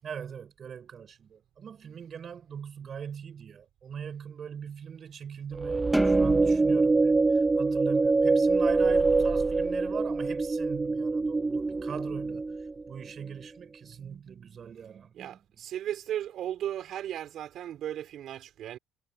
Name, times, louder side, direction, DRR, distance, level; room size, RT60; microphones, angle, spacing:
voice 1, 0.0-15.4, right 7 dB, 45° right, 7.3 m, -41 dB
sound 1, 5.5-12.9, right 3 dB, 20° right, 0.8 m, -25 dB
sound 2, 5.9-8.5, equal, ahead, 2.4 m, -34 dB
voice 2, 15.1-18.8, right 11 dB, 60° right, 5.8 m, -36 dB
supercardioid pair, 90°, 0 cm